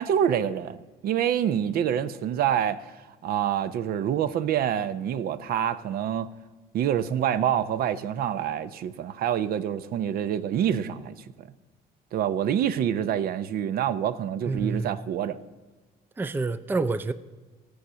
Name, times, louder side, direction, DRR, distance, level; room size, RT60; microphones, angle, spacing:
voice 1, 0.0-2.9 3.2-6.3 6.7-11.5 12.1-15.4, right 9 dB, 60° right, 0.6 m, -26 dB
voice 2, 14.5-15.0 16.2-17.1, right 3 dB, 10° right, 0.4 m, -28 dB
14.5 x 6.4 x 6.8 m
cardioid pair, 110°, 17 cm